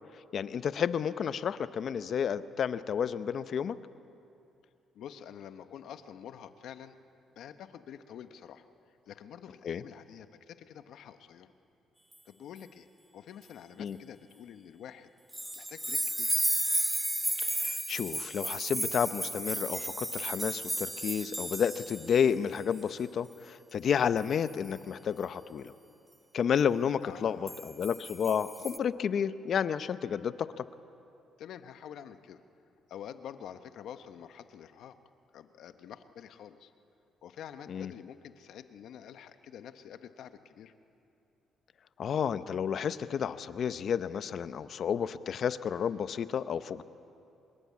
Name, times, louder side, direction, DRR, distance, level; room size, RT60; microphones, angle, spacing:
voice 1, 0.3-3.8 9.6-9.8 13.8-14.0 17.4-25.7 26.3-30.7 37.7-37.9 42.0-46.8, left 7 dB, 55° left, 13 dB, 0.8 m, -31 dB
voice 2, 4.9-7.0 7.3-8.6 9.0-11.5 12.2-12.9 13.1-15.1 15.5-16.4 27.0-27.6 31.4-32.4 32.9-35.0 35.3-36.7 37.2-40.7, left 9 dB, 75° left, 9 dB, 1.2 m, -47 dB
sound 1, 15.3-22.3 22.6-22.8 24.2-24.5 27.5-28.8, right 1 dB, 5° right, 0.7 m, -33 dB
25.0 x 21.5 x 8.6 m, 2.7 s
cardioid pair, 90°, 0 cm